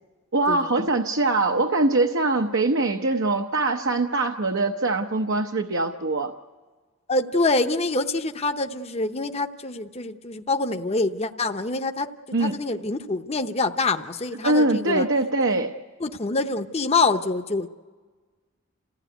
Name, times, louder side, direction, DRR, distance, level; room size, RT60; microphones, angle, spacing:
voice 1, 0.3-6.3 12.3-12.6 14.4-15.7, right 2 dB, 60° right, 4 dB, 0.9 m, -23 dB
voice 2, 7.1-12.1 12.4-15.1 15.5-15.6 16.0-17.7, left 3 dB, 30° left, 7 dB, 0.8 m, -25 dB
28.0 x 15.5 x 9.2 m, 1.4 s
head